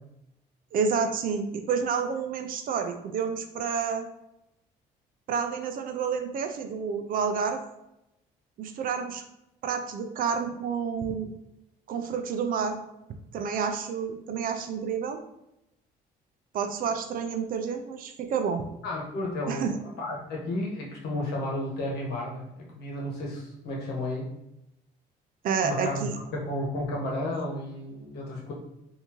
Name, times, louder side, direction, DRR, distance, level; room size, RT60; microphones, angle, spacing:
voice 1, 0.7-4.1 5.3-7.6 8.6-9.2 9.6-11.3 11.9-12.8 13.3-15.2 16.5-18.6 19.5-19.7 25.4-26.2, right 6 dB, 55° right, 6 dB, 0.5 m, -29 dB
voice 2, 18.8-22.5 22.8-24.3 25.6-28.5, left 1 dB, 75° left, -2 dB, 1.2 m, -32 dB
3.5 x 2.7 x 3.0 m, 0.87 s
cardioid pair, 110°, 17 cm